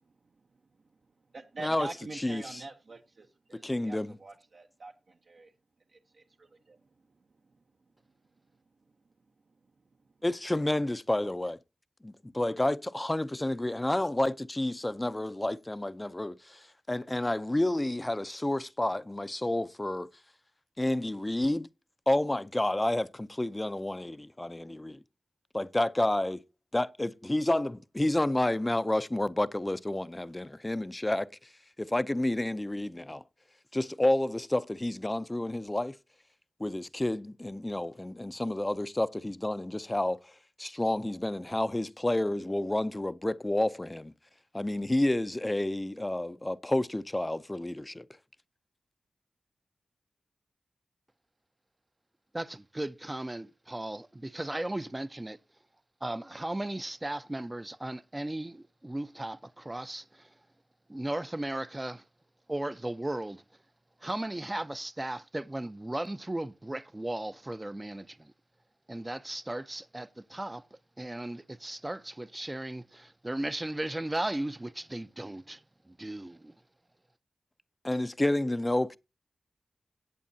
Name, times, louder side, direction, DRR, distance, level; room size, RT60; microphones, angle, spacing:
voice 1, 1.3-4.9 5.3-5.5 5.9-6.5, right 3 dB, 65° right, 1.0 m, -44 dB
voice 2, 2.1-2.6 3.5-4.2 10.2-11.6 12.0-20.1 20.8-21.7 22.1-25.0 25.5-26.4 26.7-31.3 31.8-33.2 33.7-36.0 36.6-40.2 40.6-44.1 44.5-48.0 77.8-79.0, left 1 dB, 20° left, 0.5 m, -30 dB
voice 3, 52.3-55.4 56.0-60.3 60.9-62.0 62.5-63.4 64.0-68.2 68.9-70.6 71.0-75.6 76.0-76.5, right 1 dB, 20° right, 0.6 m, -36 dB
16.0 x 8.4 x 2.7 m
cardioid pair, 50°, 0 cm